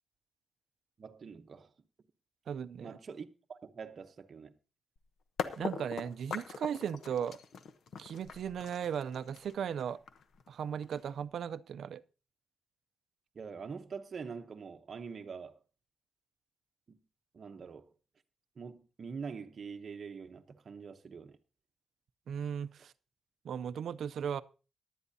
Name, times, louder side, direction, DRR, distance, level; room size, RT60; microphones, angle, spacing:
voice 1, 1.0-1.7 2.8-4.5 13.3-15.6 16.9-17.0 17.3-17.9 18.6-21.4, right 5 dB, 40° right, 0.9 m, -45 dB
voice 2, 2.5-3.0 5.6-7.4 8.0-10.0 10.5-12.0 22.3-22.9 23.4-24.4, right 8 dB, 60° right, 0.5 m, -37 dB
sound 1, 5.0-5.1 5.4-11.2, left 6 dB, 60° left, 0.9 m, -41 dB
18.0 x 11.0 x 2.7 m
wide cardioid pair, 165°, 0 cm